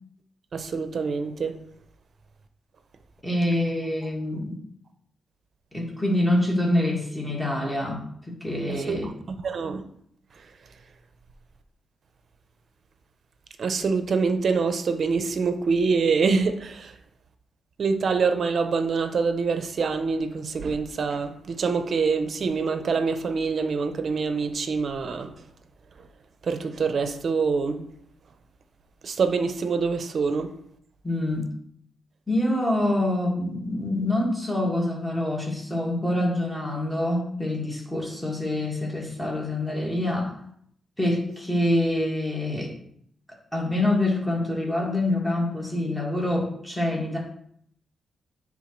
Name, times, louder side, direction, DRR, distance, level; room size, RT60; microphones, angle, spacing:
voice 1, 0.5-1.6 8.7-9.8 13.6-16.9 17.8-25.3 26.4-27.9 29.0-30.5, right 5 dB, 55° right, 0.7 m, -25 dB
voice 2, 3.2-4.6 5.7-9.1 31.0-31.5 32.3-40.3 41.0-42.7 43.5-47.2, left 1 dB, 5° left, 1.9 m, -26 dB
9.6 x 3.7 x 3.2 m
cardioid pair, 110°, 0 cm